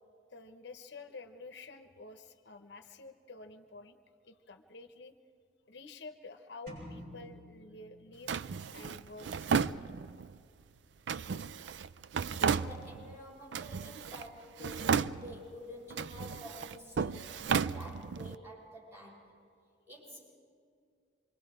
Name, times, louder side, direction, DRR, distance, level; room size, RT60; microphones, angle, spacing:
voice 1, 0.3-4.0 4.2-5.1 5.7-8.4 8.7-9.5, left 3 dB, 70° left, 8 dB, 0.9 m, -50 dB
sound 1, 6.7-8.6, equal, 55° right, 7.8 m, -50 dB
Drawer open or close, 8.3-10.3 11.1-13.2 13.5-14.3 14.6-15.5 15.9-18.3, right 6 dB, 75° right, 0.4 m, -34 dB
voice 2, 12.4-19.4 19.9-20.4, left 1 dB, 15° right, -5 dB, 6.9 m, -49 dB
27.0 x 23.5 x 4.8 m, 2.4 s
head